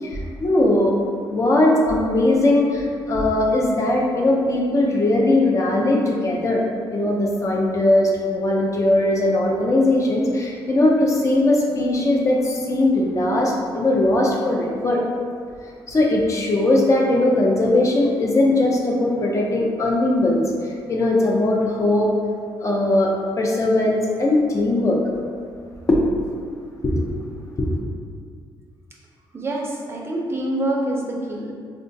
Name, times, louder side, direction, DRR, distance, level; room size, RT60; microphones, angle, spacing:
voice 1, 0.0-1.0 1.3-6.6 6.9-15.0 15.9-22.1 22.6-25.0 25.9-26.0 26.8-27.0 27.6-27.8, left 1 dB, 35° left, -1 dB, 0.5 m, -19 dB
voice 2, 29.3-31.5, right 1 dB, 25° right, -2 dB, 0.5 m, -26 dB
3.7 x 2.2 x 2.6 m, 2.1 s
cardioid pair, 100°, 9 cm